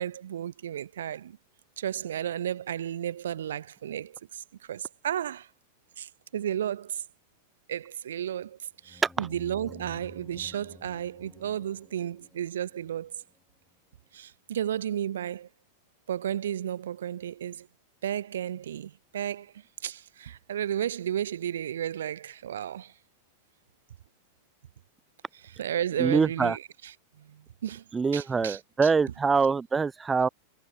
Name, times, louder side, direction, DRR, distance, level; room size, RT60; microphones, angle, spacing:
voice 1, 0.0-1.4 1.8-4.4 4.7-5.5 6.0-7.0 7.7-13.2 14.1-15.5 16.1-17.7 18.0-19.5 19.8-22.9 25.4-27.8 28.1-28.6, right 10 dB, 65° right, 4.0 m, -33 dB
sound 1, 8.8-13.4, left 3 dB, 10° left, 7.5 m, -51 dB
voice 2, 26.0-26.6 27.9-30.3, right 5 dB, 15° right, 1.7 m, -24 dB
figure-of-eight pair, 90°, 0 cm